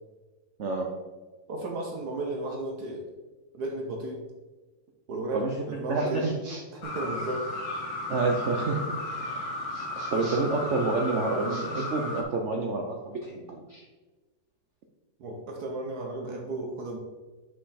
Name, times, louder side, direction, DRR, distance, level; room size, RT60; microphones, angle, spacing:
voice 1, 1.5-3.0 3.5-4.2 5.1-6.3 6.7-7.5 15.2-17.0, right 2 dB, 60° right, 1 dB, 1.3 m, -34 dB
voice 2, 5.3-6.3 8.1-9.4 9.9-13.8, right 3 dB, 85° right, 1 dB, 0.6 m, -29 dB
sound 1, 5.9-6.8 9.7-10.6 11.4-11.9, right 1 dB, 40° right, 2.1 m, -47 dB
sound 2, 6.8-12.2, left 1 dB, 90° left, 1.8 m, -34 dB
5.6 x 5.3 x 4.1 m, 1.3 s
omnidirectional pair, 2.1 m